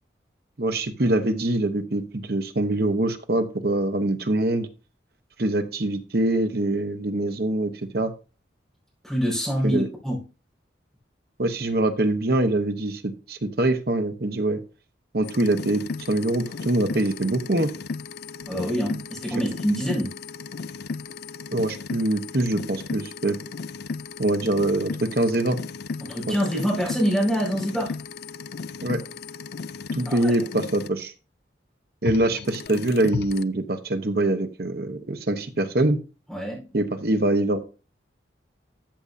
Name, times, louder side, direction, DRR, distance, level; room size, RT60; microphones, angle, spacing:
voice 1, 0.6-4.7 5.4-8.1 9.6-9.9 11.4-14.6 15.1-17.7 21.5-23.4 24.2-25.6 26.3-26.4 28.8-29.0 29.9-31.1 32.0-36.0 36.7-37.6, right 2 dB, 55° right, 8 dB, 1.0 m, -24 dB
voice 2, 9.0-10.2 18.5-20.1 26.0-28.0 30.0-30.3 36.3-36.7, equal, ahead, -5 dB, 5.0 m, -25 dB
sound 1, 15.2-30.9 32.0-33.4, left 4 dB, 55° left, 0.4 m, -35 dB
13.5 x 7.0 x 2.7 m, 0.32 s
head